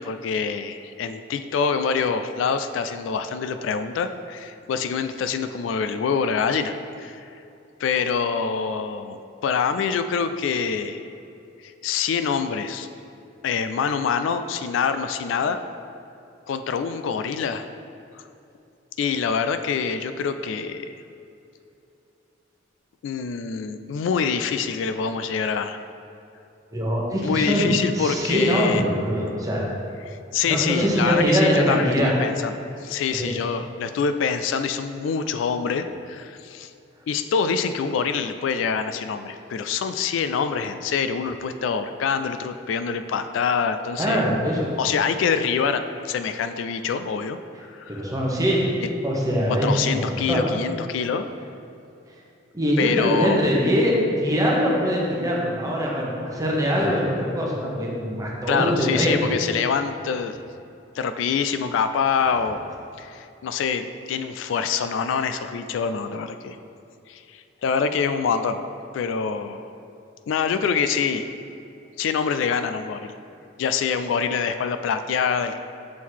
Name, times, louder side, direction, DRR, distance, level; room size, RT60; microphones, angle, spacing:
voice 1, 0.0-7.2 7.8-9.2 9.4-11.1 11.6-12.9 13.4-15.6 16.5-17.7 19.0-20.9 23.0-25.8 27.2-28.8 30.1-32.6 32.8-36.7 37.1-44.2 44.8-47.4 47.7-48.1 49.5-51.3 52.8-53.5 58.5-60.4 61.0-62.6 63.0-66.6 67.1-68.6 68.9-69.7 70.3-71.3 72.0-73.1 73.6-75.6, left 6 dB, 80° left, 10 dB, 0.3 m, -25 dB
voice 2, 26.7-29.6 30.5-32.2 33.2-33.4 44.0-44.7 47.9-48.6 49.0-50.4 52.5-59.5, equal, 20° right, -3 dB, 1.0 m, -22 dB
6.3 x 3.7 x 4.5 m, 2.7 s
head